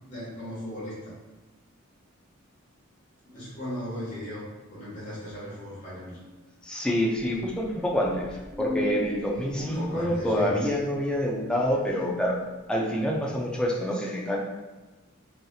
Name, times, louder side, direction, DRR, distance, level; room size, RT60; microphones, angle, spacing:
voice 1, 0.1-1.1 3.3-4.4 4.7-6.2 9.5-10.5, equal, 35° left, -9 dB, 1.4 m, -37 dB
voice 2, 6.6-12.3 12.7-14.4, equal, 5° left, -3 dB, 0.4 m, -27 dB
sound 1, 7.1-12.8, left 2 dB, 55° left, 1.4 m, -40 dB
3.1 x 2.7 x 2.3 m, 1.2 s
head